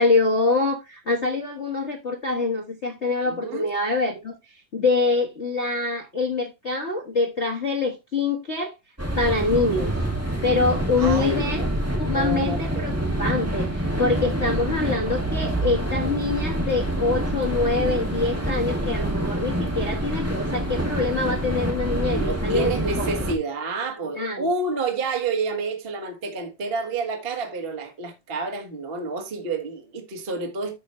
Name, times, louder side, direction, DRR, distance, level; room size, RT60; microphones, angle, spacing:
voice 1, 0.0-8.7 9.1-10.0 10.4-11.6 11.9-23.1 24.0-24.5, left 3 dB, 45° left, 0.8 m, -25 dB
voice 2, 3.2-3.7 10.9-11.7 12.1-12.9 22.1-30.8, right 3 dB, 30° right, 1.1 m, -29 dB
sound 1, 9.0-23.3, right 1 dB, 5° right, 1.9 m, -26 dB
12.5 x 5.1 x 3.2 m
omnidirectional pair, 3.6 m